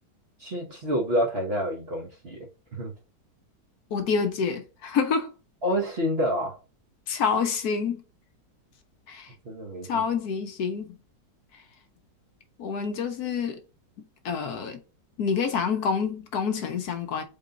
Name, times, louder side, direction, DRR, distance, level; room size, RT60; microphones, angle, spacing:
voice 1, 0.4-2.9 5.6-6.6 9.4-10.0, equal, 45° right, 0.9 m, -28 dB
voice 2, 3.9-5.3 7.1-8.0 9.1-9.3 9.9-11.0 12.6-13.6 14.2-14.8 15.2-17.2, left 6 dB, 70° left, 1.1 m, -27 dB
3.7 x 3.7 x 3.8 m
omnidirectional pair, 1.9 m